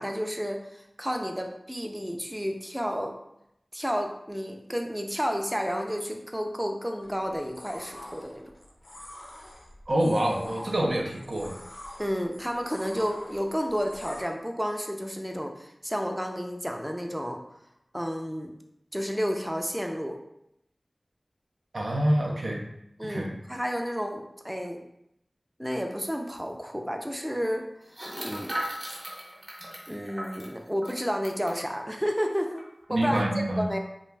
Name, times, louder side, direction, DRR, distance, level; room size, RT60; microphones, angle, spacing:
voice 1, 0.0-3.1 3.7-8.4 12.0-17.4 17.9-18.5 18.9-20.2 23.0-24.8 25.6-27.7 28.2-28.6 29.9-33.8, equal, 5° right, 3 dB, 0.3 m, -31 dB
sound 1, 7.0-14.2, left 1 dB, 70° left, 0.4 m, -46 dB
voice 2, 9.9-11.6 21.7-22.6 23.0-23.3 32.9-33.7, right 1 dB, 85° right, -1 dB, 0.4 m, -26 dB
sound 2, 26.1-26.2 26.4-26.5 27.9-31.6 32.2-32.3 32.6-32.9, right 1 dB, 35° right, 0.8 m, -37 dB
2.4 x 2.2 x 3.2 m, 0.79 s
wide cardioid pair, 40°, 0 cm